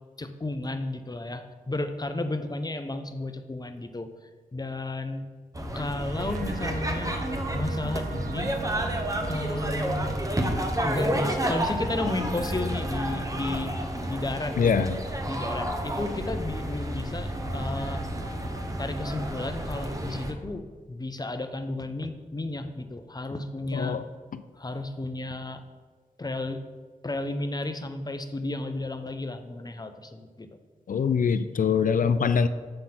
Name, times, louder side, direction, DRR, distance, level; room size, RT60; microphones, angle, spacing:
voice 1, 0.2-4.1 4.5-5.3 5.7-7.3 7.5-8.5 9.3-10.2 10.8-13.7 14.1-14.7 15.2-18.1 18.8-24.0 24.6-25.6 26.2-26.6 27.0-30.5, left 2 dB, 25° left, 8 dB, 0.7 m, -33 dB
sound 1, 5.5-20.3, right 1 dB, 20° right, 0.9 m, -30 dB
sound 2, 6.2-10.1, right 8 dB, 65° right, 0.4 m, -39 dB
voice 2, 14.6-15.0 23.7-24.0 30.9-32.5, left 6 dB, 60° left, 12 dB, 0.4 m, -23 dB
7.7 x 3.8 x 5.8 m, 1.4 s
cardioid pair, 50°, 15 cm